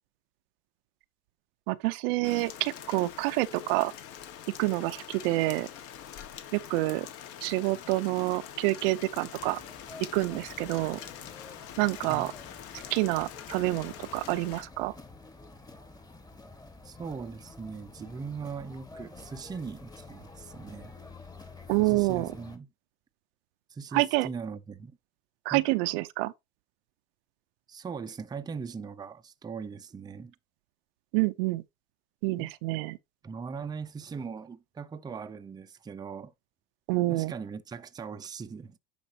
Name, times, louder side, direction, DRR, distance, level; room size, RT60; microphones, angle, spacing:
voice 1, 1.7-3.9 4.6-5.7 6.5-7.1 7.4-9.6 10.1-11.0 11.8-12.3 12.9-14.9 21.7-22.3 23.9-24.3 25.5-26.3 31.1-31.6 32.2-33.0 36.9-37.3, right 20 dB, 65° right, 0.7 m, -27 dB
Rain, 2.2-14.6, left 9 dB, 50° left, 1.7 m, -45 dB
sound 1, 9.3-22.6, left 3 dB, 10° left, 1.5 m, -49 dB
voice 2, 16.8-21.0 21.8-22.7 23.7-25.0 25.5-25.7 27.7-30.3 32.4-32.5 33.2-36.3 37.1-38.8, right 5 dB, 15° right, 0.7 m, -40 dB
10.0 x 5.2 x 2.9 m
supercardioid pair, 135°, 31 cm